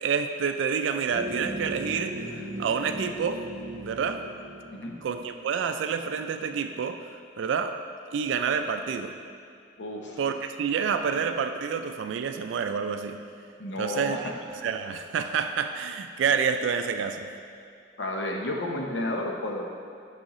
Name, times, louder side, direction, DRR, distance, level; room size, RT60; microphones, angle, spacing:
voice 1, 0.0-3.4 3.8-4.2 5.0-7.0 7.4-7.8 8.1-9.2 10.2-13.2 13.8-14.3 14.6-17.3, right 6 dB, 75° right, 7 dB, 0.3 m, -28 dB
sound 1, 1.1-5.7, right 1 dB, 45° right, 0.6 m, -38 dB
voice 2, 9.8-10.2 13.6-14.3 18.0-19.7, left 1 dB, 70° left, 1 dB, 0.8 m, -31 dB
6.3 x 6.2 x 3.0 m, 2.4 s
head